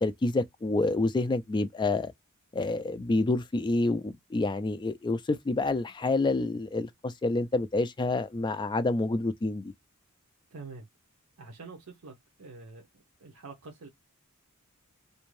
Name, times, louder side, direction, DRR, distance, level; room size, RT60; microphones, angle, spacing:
voice 1, 0.0-2.1 2.5-9.7, left 2 dB, 20° left, 0.3 m, -28 dB
voice 2, 10.5-10.9 11.4-12.9 13.2-13.9, right 4 dB, 75° right, 0.7 m, -46 dB
2.6 x 2.2 x 3.1 m
head